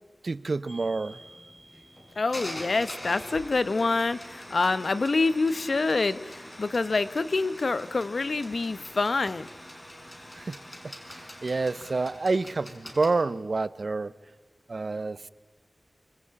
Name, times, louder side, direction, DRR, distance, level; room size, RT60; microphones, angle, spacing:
voice 1, 0.2-1.2 10.3-10.6 11.1-14.1 14.7-15.2, right 3 dB, 60° right, 16 dB, 0.9 m, -28 dB
sound 1, 0.7-13.1, equal, 25° left, 5.9 m, -44 dB
voice 2, 2.2-9.5, left 3 dB, 65° left, 13 dB, 1.1 m, -26 dB
25.5 x 25.5 x 8.8 m, 1.4 s
wide cardioid pair, 75°, 0 cm